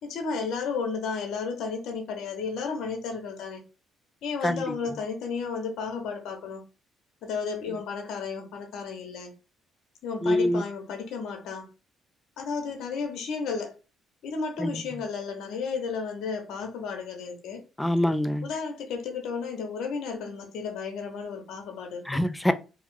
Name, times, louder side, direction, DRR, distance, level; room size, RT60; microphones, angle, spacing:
voice 1, 0.0-3.6 4.2-6.6 7.2-9.3 10.0-11.7 12.4-13.8 14.2-17.6 18.4-22.2, left 5 dB, 75° left, 0.9 m, -33 dB
voice 2, 10.2-10.6 14.6-14.8 17.8-18.5 22.1-22.5, left 1 dB, 5° left, 0.4 m, -24 dB
2.8 x 2.4 x 3.7 m
cardioid pair, 105°, 0 cm